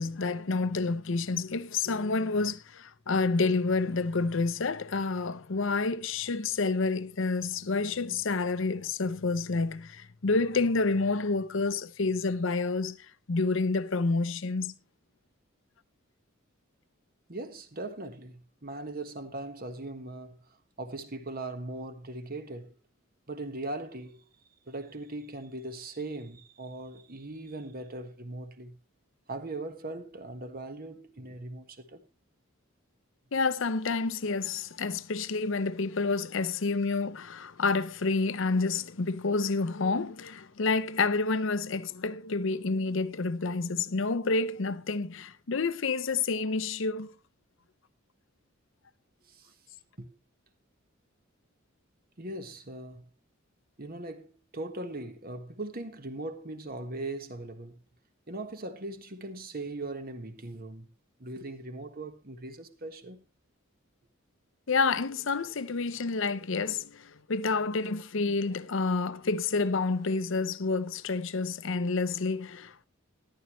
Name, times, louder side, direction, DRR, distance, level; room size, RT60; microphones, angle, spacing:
voice 1, 0.0-13.0 13.3-14.7 33.3-47.1 64.7-72.9, left 3 dB, 60° left, 0.7 m, -29 dB
voice 2, 17.3-22.7 23.3-24.2 24.7-28.8 29.3-32.0 49.2-49.5 50.0-50.1 52.2-53.1 53.8-57.8 58.3-60.9 61.2-63.2, right 2 dB, 45° right, 1.5 m, -39 dB
13.5 x 11.5 x 3.1 m
head